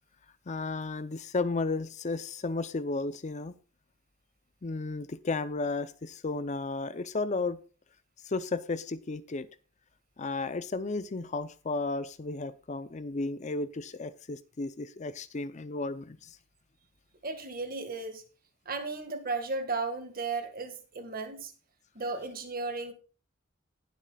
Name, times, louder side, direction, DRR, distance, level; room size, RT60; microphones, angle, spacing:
voice 1, 0.5-3.5 4.6-7.6 8.2-9.5 10.2-16.4, left 3 dB, 35° left, 14 dB, 0.5 m, -33 dB
voice 2, 17.2-18.2 18.7-21.5 22.0-22.9, right 3 dB, 50° right, 7 dB, 1.8 m, -35 dB
19.5 x 7.5 x 2.3 m, 0.37 s
head